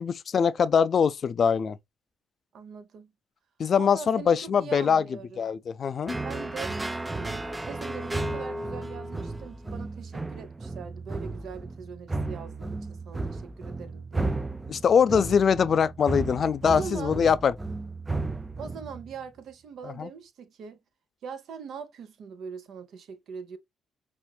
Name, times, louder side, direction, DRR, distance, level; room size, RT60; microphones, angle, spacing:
voice 1, 0.0-1.8 3.6-5.0 5.4-6.2 14.7-17.5 19.8-20.1, left 7 dB, 50° left, 0.3 m, -23 dB
voice 2, 2.5-3.1 3.8-5.5 6.2-6.8 7.2-14.4 16.6-17.2 18.6-20.8 21.2-23.6, right 6 dB, 70° right, 0.8 m, -42 dB
sound 1, 6.1-19.2, right 2 dB, 15° right, 0.4 m, -34 dB
5.7 x 2.5 x 2.2 m
cardioid pair, 90°, 0 cm